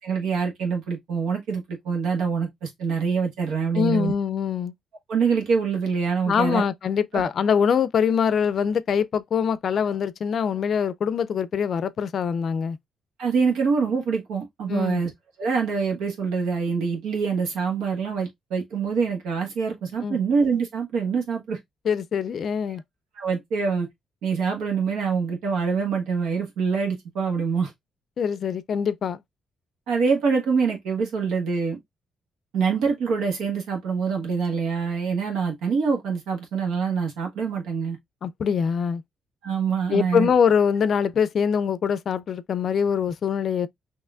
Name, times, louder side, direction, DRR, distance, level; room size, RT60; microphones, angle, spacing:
voice 1, 0.0-4.1 5.1-6.6 7.1-7.3 13.2-15.1 15.4-21.6 23.2-23.9 24.2-27.7 29.9-31.8 32.5-38.0 39.4-40.3, right 5 dB, 85° right, 1.5 m, -25 dB
voice 2, 3.7-4.7 6.3-12.8 14.7-15.0 20.0-20.2 21.8-22.8 28.2-29.2 38.2-39.0 39.9-43.7, left 7 dB, 55° left, 0.4 m, -23 dB
5.6 x 2.9 x 2.4 m
cardioid pair, 90°, 0 cm